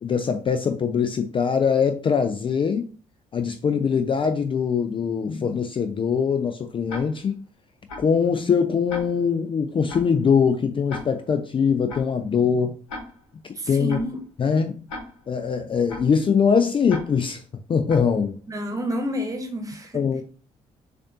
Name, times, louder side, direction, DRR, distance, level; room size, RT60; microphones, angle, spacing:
voice 1, 0.0-2.9 3.3-7.4 8.0-12.7 13.4-14.0 14.4-14.8 15.3-17.4 17.7-18.4 19.9-20.2, left 6 dB, 30° left, 0.5 m, -22 dB
Tick-tock, 6.9-7.4 7.9-8.2 8.9-9.4 9.9-10.2 10.9-11.4 11.9-12.2 12.9-13.4 13.9-14.2 14.9-15.4 15.9-16.2 16.9-17.4 17.9-18.2, left 2 dB, 75° left, 1.1 m, -38 dB
voice 2, 13.5-14.2 18.5-20.0, equal, 20° right, 1.2 m, -29 dB
6.5 x 2.6 x 2.7 m
figure-of-eight pair, 45°, 17 cm